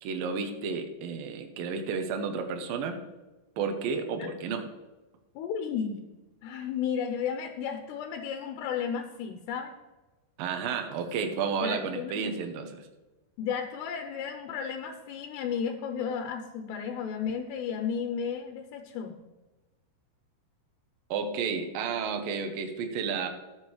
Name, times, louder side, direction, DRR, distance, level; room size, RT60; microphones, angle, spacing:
voice 1, 0.0-3.0 3.6-4.7 10.4-12.8 21.1-23.3, right 5 dB, 70° right, 5 dB, 2.5 m, -32 dB
voice 2, 5.4-6.0 6.4-9.7 11.6-12.3 13.4-19.2, left 7 dB, 85° left, 5 dB, 2.9 m, -33 dB
18.0 x 7.3 x 3.2 m, 1.1 s
omnidirectional pair, 4.9 m